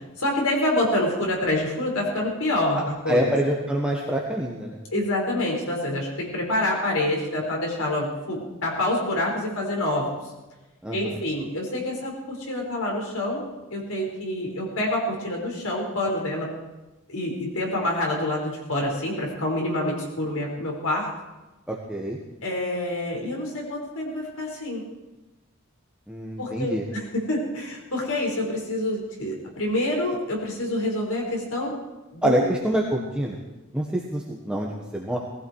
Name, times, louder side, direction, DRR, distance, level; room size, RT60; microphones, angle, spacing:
voice 1, 0.2-3.3 4.9-10.2 10.9-13.4 13.7-16.5 17.1-21.1 22.4-24.8 26.4-31.7 32.1-32.5, left 1 dB, 75° left, -1 dB, 5.3 m, -27 dB
voice 2, 3.1-4.8 10.8-11.2 21.7-22.2 26.1-26.8 32.2-33.4 33.7-35.2, right 1 dB, 5° right, -2 dB, 1.3 m, -26 dB
19.5 x 15.5 x 4.8 m, 1.1 s
head